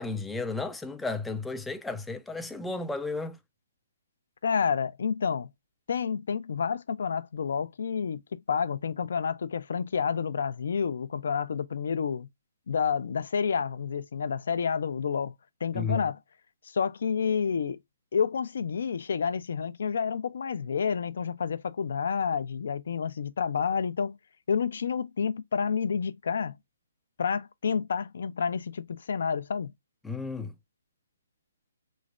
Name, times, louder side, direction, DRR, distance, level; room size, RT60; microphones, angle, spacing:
voice 1, 0.0-3.4 15.7-16.0 30.0-30.5, left 3 dB, 5° left, 0.3 m, -33 dB
voice 2, 4.4-5.5 5.9-12.3 12.7-15.3 15.6-16.2 16.6-17.8 18.1-24.2 24.5-26.5 27.2-29.7, left 6 dB, 65° left, 0.5 m, -29 dB
4.1 x 3.2 x 2.4 m
hypercardioid pair, 155°, 0 cm